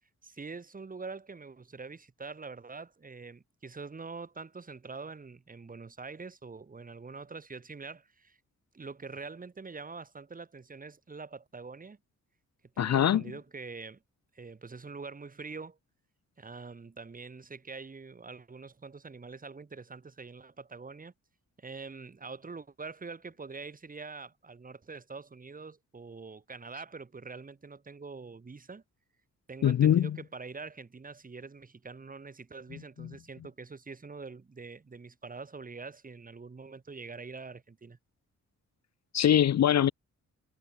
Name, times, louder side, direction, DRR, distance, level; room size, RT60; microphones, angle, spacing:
voice 1, 0.2-8.4 8.7-12.0 12.7-14.0 14.3-15.8 16.4-21.1 21.6-28.8 29.5-38.0, right 4 dB, 25° right, 3.0 m, -44 dB
voice 2, 12.8-13.2 29.6-30.1 39.1-39.9, left 10 dB, 55° left, 0.7 m, -22 dB
wide cardioid pair, 165°, 31 cm